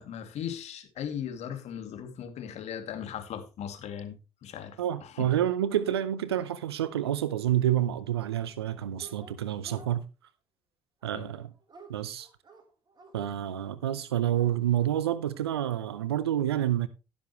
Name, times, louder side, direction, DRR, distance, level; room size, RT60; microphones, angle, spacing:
voice 1, 0.0-5.3 11.1-11.3, left 9 dB, 60° left, 2.6 m, -38 dB
voice 2, 4.8-10.0 11.0-11.5 11.9-12.3 13.1-16.9, right 11 dB, 90° right, 0.7 m, -28 dB
Dog, 9.0-9.9 11.0-13.1 13.8-13.9 14.2-14.9, right 3 dB, 35° right, 3.7 m, -52 dB
16.0 x 7.2 x 3.2 m
hypercardioid pair, 60°, 13 cm